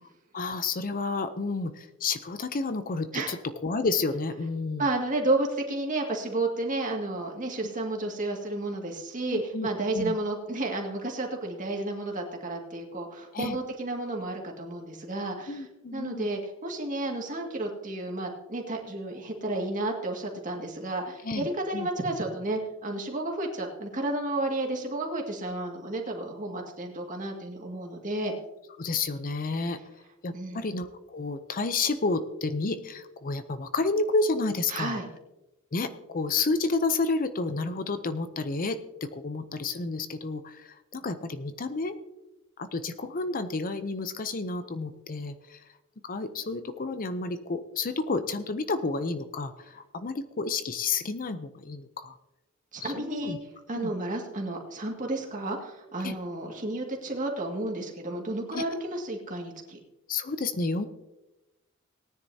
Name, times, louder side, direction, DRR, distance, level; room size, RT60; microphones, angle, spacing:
voice 1, 0.3-3.4 3.6-4.9 9.3-10.2 13.3-13.6 15.5-16.3 21.2-21.9 28.8-29.8 30.2-35.0 35.7-42.0 42.6-45.6 46.0-52.2 52.8-53.4 53.7-53.9 56.0-56.2 58.5-58.6 60.1-60.9, left 3 dB, 40° left, 10 dB, 0.6 m, -30 dB
voice 2, 4.8-15.6 15.9-28.3 30.3-30.6 34.7-35.1 52.7-53.4 53.7-59.8, right 2 dB, 35° right, 0 dB, 2.1 m, -32 dB
18.5 x 10.0 x 2.8 m, 0.99 s
head